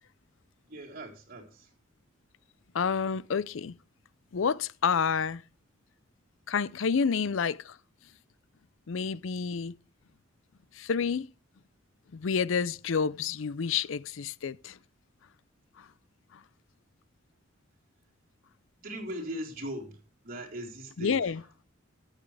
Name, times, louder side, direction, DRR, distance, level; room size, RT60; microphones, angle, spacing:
voice 1, 0.6-1.7 18.8-21.2, equal, 45° right, 3.9 m, -39 dB
voice 2, 2.7-3.8 4.3-5.4 6.5-7.8 8.9-9.7 10.7-11.3 12.1-14.8 15.8-15.9 16.3-16.4 21.0-21.4, left 6 dB, 75° left, 0.5 m, -29 dB
13.5 x 9.9 x 3.3 m
head